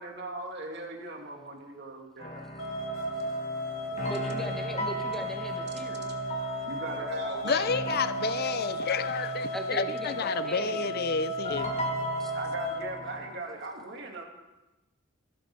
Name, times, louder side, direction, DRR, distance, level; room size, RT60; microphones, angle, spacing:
voice 1, 0.0-2.5 6.7-7.7 12.3-14.2, right 2 dB, 55° right, 2.4 m, -39 dB
sound 1, 2.2-13.4, equal, 35° left, 2.0 m, -38 dB
sound 2, 2.6-12.8, right 1 dB, 85° left, 2.2 m, -34 dB
voice 2, 4.0-6.1 9.5-10.8 12.2-12.3, equal, ahead, 1.7 m, -39 dB
voice 3, 7.4-11.7, left 5 dB, 50° left, 0.6 m, -30 dB
16.0 x 12.5 x 4.8 m
head